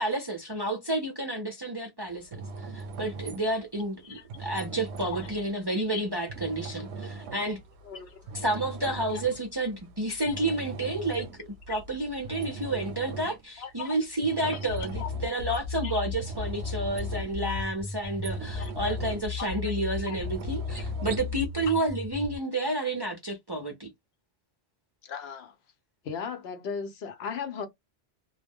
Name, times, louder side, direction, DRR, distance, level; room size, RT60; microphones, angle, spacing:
voice 1, 0.0-7.6 8.3-11.3 11.7-23.9, right 1 dB, 35° right, 0.4 m, -30 dB
sound 1, 2.1-22.0, right 4 dB, 90° right, 0.9 m, -41 dB
voice 2, 7.9-8.2 9.1-9.2 11.7-11.8 13.6-14.0 14.4-14.6 15.0-15.1 15.8-16.0 18.6-19.0 19.4-19.7 20.1-20.2 21.7-21.8 25.0-25.5 26.0-27.7, left 6 dB, 75° left, 0.9 m, -37 dB
sound 2, 14.7-22.4, left 5 dB, 50° left, 0.6 m, -35 dB
2.2 x 2.1 x 3.4 m
omnidirectional pair, 1.1 m